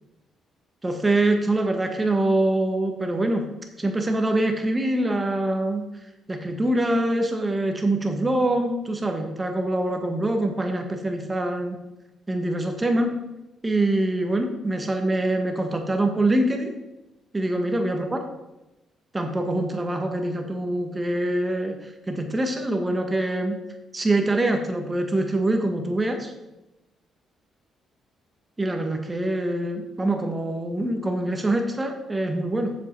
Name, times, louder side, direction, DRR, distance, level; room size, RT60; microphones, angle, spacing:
voice 1, 0.8-3.4 3.8-5.9 6.3-11.8 12.3-13.2 13.6-16.7 17.3-18.2 19.1-23.6 23.9-26.3 28.6-32.7, right 1 dB, 20° right, 4 dB, 1.5 m, -24 dB
7.6 x 7.2 x 4.6 m, 0.95 s
cardioid pair, 90°, 0 cm